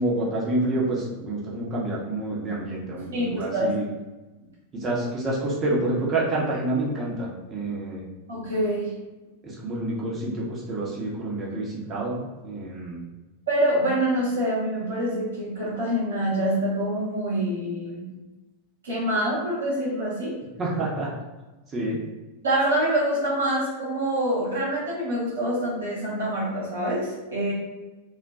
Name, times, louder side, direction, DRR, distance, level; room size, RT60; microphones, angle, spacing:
voice 1, 0.0-3.9 4.7-8.0 9.4-13.0 20.6-21.1 21.7-22.0, right 2 dB, 25° right, -5 dB, 0.7 m, -28 dB
voice 2, 3.1-3.7 8.3-8.9 13.5-18.1 18.8-20.4 22.4-27.5, right 1 dB, 70° right, -7 dB, 0.8 m, -25 dB
2.3 x 2.1 x 2.5 m, 1.2 s
figure-of-eight pair, 90°, 0 cm